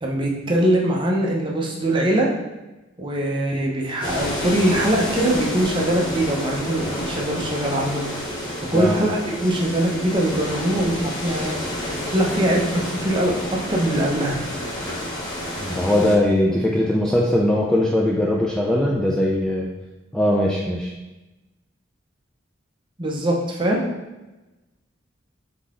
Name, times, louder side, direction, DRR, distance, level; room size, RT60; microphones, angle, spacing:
voice 1, 0.0-2.3 3.0-8.0 8.7-13.3 13.7-14.4 23.0-23.8, right 1 dB, 25° right, -2 dB, 0.7 m, -22 dB
sound 1, 4.0-16.2, equal, 20° left, 0.7 m, -29 dB
voice 2, 15.6-19.7 20.1-20.9, left 1 dB, 5° left, -4 dB, 0.3 m, -20 dB
3.8 x 3.7 x 3.6 m, 1.1 s
head